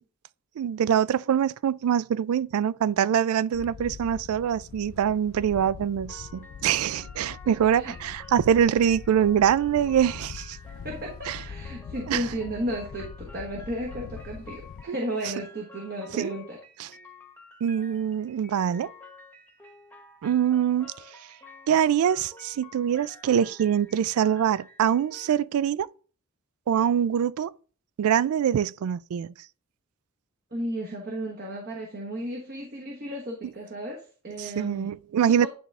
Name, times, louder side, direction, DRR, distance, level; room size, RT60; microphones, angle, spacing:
voice 1, 0.6-10.6 11.3-11.4 12.1-12.3 16.2-16.3 16.8-16.9 17.6-18.9 20.2-20.9 21.7-25.9 26.7-27.5 28.0-29.3 34.4-35.5, right 9 dB, 80° right, 0.3 m, -24 dB
Wind, 3.5-14.8, left 6 dB, 70° left, 0.3 m, -43 dB
sound 1, 6.1-25.4, left 3 dB, 10° left, 1.0 m, -51 dB
voice 2, 7.4-7.9 10.8-16.6 30.5-34.9 35.2-35.5, right 1 dB, 45° right, 1.2 m, -34 dB
10.0 x 3.4 x 3.6 m
head